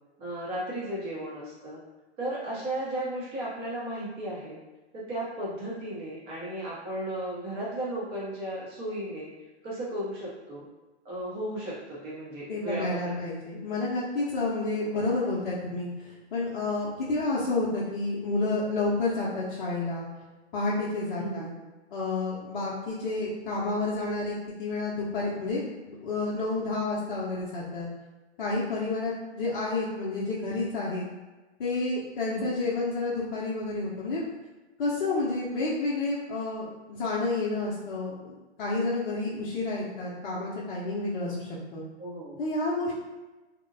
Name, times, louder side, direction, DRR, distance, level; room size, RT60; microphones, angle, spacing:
voice 1, 0.2-1.8 2.2-4.6 4.9-9.3 9.6-10.6 11.0-13.2 14.8-14.9 21.1-21.6 32.2-32.6 42.0-42.4, right 1 dB, 15° right, -7 dB, 0.6 m, -35 dB
voice 2, 12.5-20.1 20.5-21.5 21.9-27.9 28.4-31.0 31.6-34.2 34.8-41.8 42.4-42.9, left 2 dB, 50° left, -7 dB, 0.6 m, -30 dB
2.8 x 2.0 x 2.6 m, 1.1 s
hypercardioid pair, 135°, 34 cm